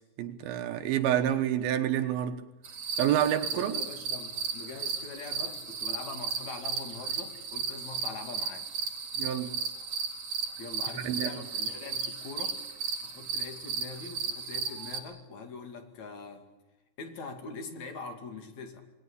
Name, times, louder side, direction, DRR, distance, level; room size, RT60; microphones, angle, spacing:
voice 1, 0.2-2.4 3.0-3.7 9.2-9.5 11.0-11.3, right 11 dB, 80° right, 2.9 m, -28 dB
sound 1, 2.6-15.0, right 5 dB, 50° right, 3.5 m, -35 dB
voice 2, 3.5-8.7 10.6-12.6 13.0-16.5 17.0-18.8, left 4 dB, 50° left, 3.5 m, -43 dB
28.0 x 20.5 x 8.4 m
omnidirectional pair, 4.4 m